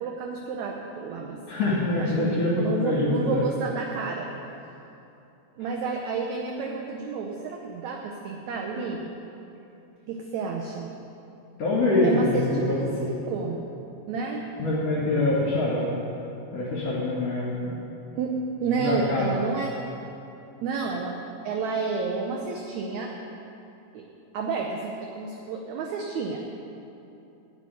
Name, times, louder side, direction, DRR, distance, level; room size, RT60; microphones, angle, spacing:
voice 1, 0.0-1.4 2.0-4.3 5.6-9.1 10.1-10.9 12.0-13.7 14.1-14.5 18.1-19.8 20.6-23.2 23.9-24.1 24.3-26.7, right 4 dB, 70° right, 1 dB, 1.8 m, -30 dB
voice 2, 1.5-2.5 2.8-3.4 11.6-13.0 14.6-15.9 16.5-17.8 18.8-19.2, left 2 dB, 55° left, -7 dB, 3.1 m, -25 dB
12.0 x 7.0 x 9.5 m, 2.8 s
omnidirectional pair, 4.0 m